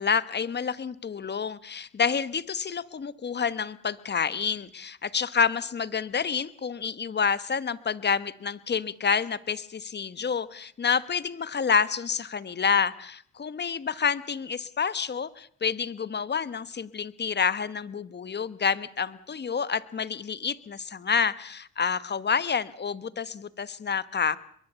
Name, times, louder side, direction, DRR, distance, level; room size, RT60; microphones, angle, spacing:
voice 1, 0.0-24.4, left 6 dB, 35° left, 16 dB, 1.1 m, -28 dB
24.0 x 22.0 x 6.9 m, 0.62 s
cardioid pair, 90°, 30 cm